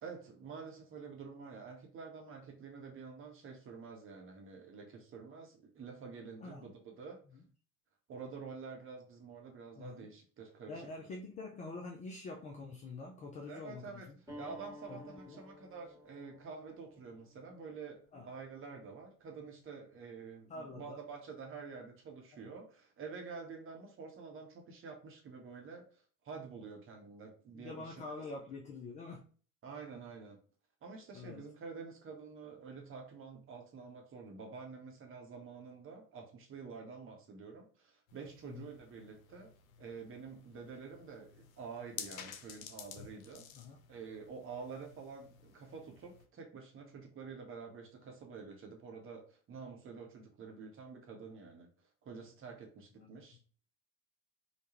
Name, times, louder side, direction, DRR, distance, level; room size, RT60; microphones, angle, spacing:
voice 1, 0.0-7.2 8.1-10.7 13.5-14.1 14.4-27.9 29.6-30.4 30.8-39.5 39.8-43.5 43.9-51.7 52.0-53.4, right 5 dB, 30° right, 2 dB, 0.9 m, -48 dB
voice 2, 6.4-6.7 7.3-7.4 9.8-10.1 10.7-14.1 14.9-15.4 18.1-18.3 20.5-21.0 22.4-22.5 27.5-29.2 31.1-31.4 38.4-38.7 43.5-43.8 53.0-53.3, left 3 dB, 20° left, 1 dB, 0.3 m, -46 dB
sound 1, 14.3-19.4, left 1 dB, 5° right, 1.4 m, -55 dB
sound 2, 38.1-46.3, left 8 dB, 70° left, 0.5 m, -52 dB
3.4 x 2.1 x 2.9 m, 0.41 s
figure-of-eight pair, 60°, 43 cm